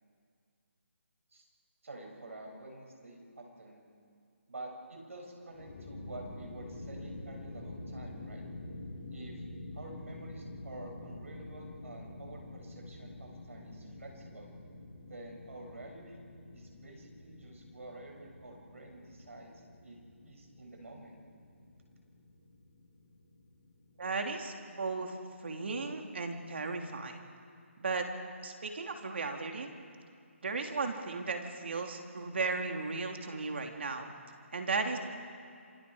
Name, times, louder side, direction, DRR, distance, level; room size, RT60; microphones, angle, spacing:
voice 1, 1.8-3.8 4.5-8.4 9.1-9.4 9.7-14.5 15.0-16.2 16.5-19.5 19.8-21.2, right 2 dB, 85° right, 1 dB, 7.5 m, -49 dB
sound 1, 5.5-24.3, left 2 dB, 40° left, 5.1 m, -48 dB
voice 2, 24.0-25.1 25.4-27.2 27.8-28.1 28.4-29.7 30.4-34.1 34.5-35.0, right 4 dB, 55° right, 3 dB, 2.9 m, -35 dB
27.0 x 25.5 x 5.0 m, 2.3 s
hypercardioid pair, 170°, 7 cm